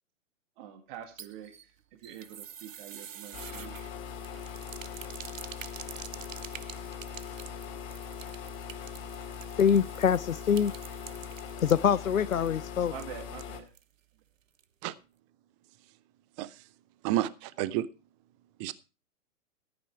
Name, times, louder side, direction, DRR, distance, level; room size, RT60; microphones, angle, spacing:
voice 1, 0.6-3.7 12.9-13.7, right 10 dB, 40° right, 2.0 m, -46 dB
sound 1, 0.9-13.9 14.2-14.3 14.6-14.7, right 9 dB, 70° right, 1.0 m, -48 dB
sound 2, 3.3-13.6, left 7 dB, 35° left, 2.6 m, -41 dB
voice 2, 9.6-10.7 11.6-12.9, left 8 dB, 85° left, 0.7 m, -24 dB
voice 3, 17.0-17.9 18.6-18.7, right 14 dB, 25° right, 0.6 m, -30 dB
13.5 x 9.8 x 4.6 m
figure-of-eight pair, 120°, 40 cm